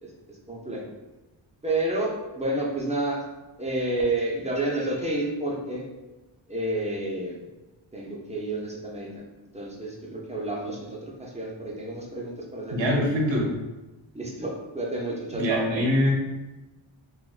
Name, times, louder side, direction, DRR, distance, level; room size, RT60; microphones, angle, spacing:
voice 1, 0.0-0.9 1.6-3.2 3.6-5.9 6.5-7.5 7.9-9.2 9.5-13.1 14.1-15.6, right 2 dB, 15° right, -3 dB, 0.5 m, -30 dB
voice 2, 12.7-13.5 15.3-16.1, equal, 70° right, -2 dB, 0.7 m, -23 dB
3.3 x 2.3 x 2.4 m, 1.1 s
wide cardioid pair, 100°, 47 cm